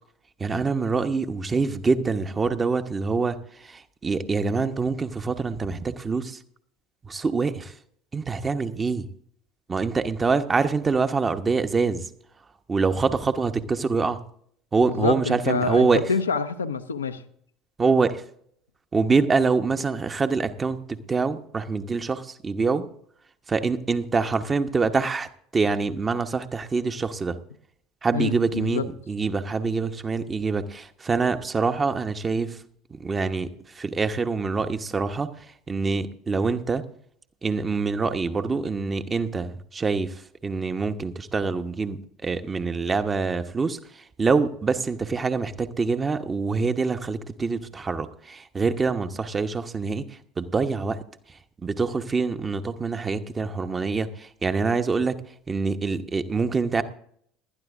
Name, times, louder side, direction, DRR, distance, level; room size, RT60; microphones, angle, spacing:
voice 1, 0.4-6.4 7.0-7.7 8.1-9.1 9.7-12.1 12.7-14.2 14.7-16.0 17.8-18.2 18.9-22.9 23.5-27.4 28.0-32.6 32.9-36.8 37.4-50.1 50.4-51.0 51.6-55.2 55.5-56.8, right 4 dB, 25° right, 9 dB, 1.0 m, -25 dB
voice 2, 14.8-17.2 28.1-28.9, left 5 dB, 75° left, 9 dB, 0.8 m, -27 dB
20.0 x 12.5 x 2.6 m, 0.65 s
figure-of-eight pair, 65°, 0 cm